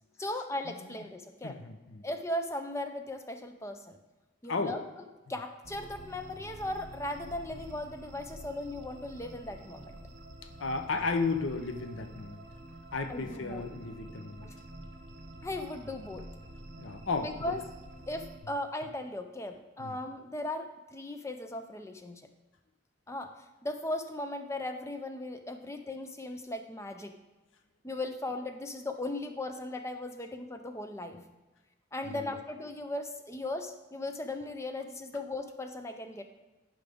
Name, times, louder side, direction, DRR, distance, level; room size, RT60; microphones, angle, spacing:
voice 1, 0.2-1.6 2.0-4.0 4.4-4.8 5.3-9.9 13.1-13.7 14.4-14.6 15.4-16.3 17.2-17.6 18.1-22.2 23.1-27.2 27.8-31.2 31.9-36.2, left 1 dB, 15° left, 7 dB, 0.4 m, -37 dB
voice 2, 1.4-2.0 4.5-4.7 10.6-12.4 12.9-14.5 16.8-17.5 19.8-20.0 31.1-31.2 32.1-32.3, left 4 dB, 80° left, 7 dB, 0.7 m, -34 dB
sound 1, 5.6-18.4, right 1 dB, 65° right, 0.9 m, -48 dB
10.5 x 4.8 x 3.5 m, 1.1 s
head